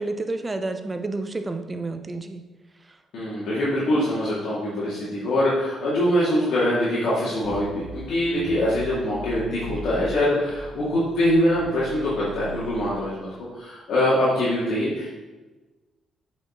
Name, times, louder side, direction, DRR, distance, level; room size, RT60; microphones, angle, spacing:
voice 1, 0.0-2.4, right 2 dB, 25° right, 8 dB, 0.7 m, -30 dB
voice 2, 3.1-15.1, left 1 dB, 70° left, -8 dB, 2.2 m, -23 dB
sound 1, 7.4-10.2 10.5-12.9, right 2 dB, 85° right, 1.3 m, -39 dB
7.9 x 5.3 x 3.8 m, 1.2 s
cardioid pair, 90°, 0 cm